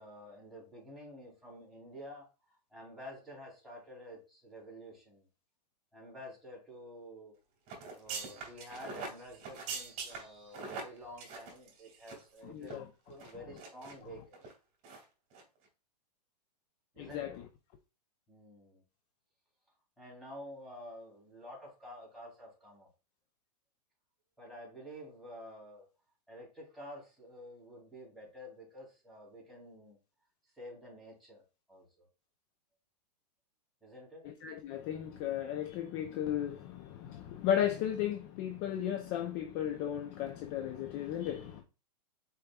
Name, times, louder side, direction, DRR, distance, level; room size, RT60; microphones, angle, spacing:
voice 1, 0.0-5.3 5.9-7.3 7.9-14.4 16.9-17.4 18.3-18.8 20.0-22.9 24.4-25.9 26.3-30.0 30.6-31.4 31.7-32.1 33.8-34.2, equal, ahead, -3 dB, 2.8 m, -50 dB
sound 1, 7.7-12.4 12.6-12.7 13.2-13.9 14.3-14.5 14.8-15.0 15.3-15.4, right 4 dB, 35° right, 2.2 m, -43 dB
voice 2, 12.4-12.9 17.0-17.3 34.2-41.6, left 10 dB, 35° left, 6 dB, 0.5 m, -35 dB
5.1 x 4.5 x 2.3 m, 0.31 s
hypercardioid pair, 145°, 21 cm